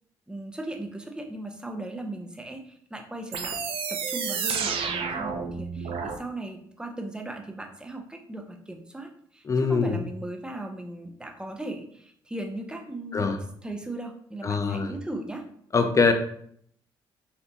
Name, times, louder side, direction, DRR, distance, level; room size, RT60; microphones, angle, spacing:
voice 1, 0.3-3.6 3.9-13.3 13.6-15.4, right 1 dB, 10° right, 4 dB, 0.6 m, -37 dB
sound 1, 3.3-6.2, right 6 dB, 65° right, 0.5 m, -30 dB
voice 2, 9.5-10.0 13.1-13.4 14.4-14.9 15.7-16.1, left 4 dB, 30° left, 6 dB, 0.5 m, -23 dB
3.4 x 2.6 x 2.8 m, 0.65 s
supercardioid pair, 60°, 10 cm